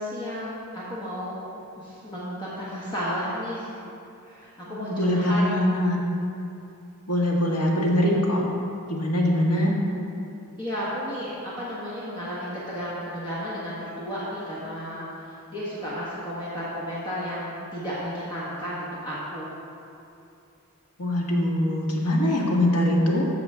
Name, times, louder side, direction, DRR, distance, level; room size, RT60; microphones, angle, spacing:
voice 1, 0.0-1.4 1.8-3.7 4.3-5.4 10.6-19.5, equal, 20° left, -9 dB, 1.4 m, -33 dB
voice 2, 4.7-6.0 7.1-8.4 8.9-9.7 21.0-23.3, left 1 dB, 85° left, -2 dB, 1.6 m, -23 dB
14.5 x 5.8 x 3.6 m, 2.6 s
head